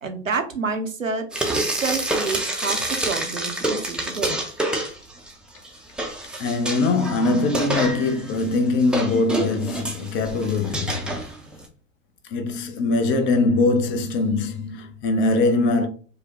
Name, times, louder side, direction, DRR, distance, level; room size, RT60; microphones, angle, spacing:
voice 1, 0.0-1.3 1.7-4.4, right 4 dB, 85° right, 0.8 m, -28 dB
Frying (food), 1.3-5.3 5.6-11.7, right 1 dB, ahead, 0.6 m, -28 dB
voice 2, 6.4-11.0 12.3-15.9, left 3 dB, 30° left, 0.7 m, -22 dB
4.8 x 2.1 x 3.0 m
figure-of-eight pair, 85°, 38 cm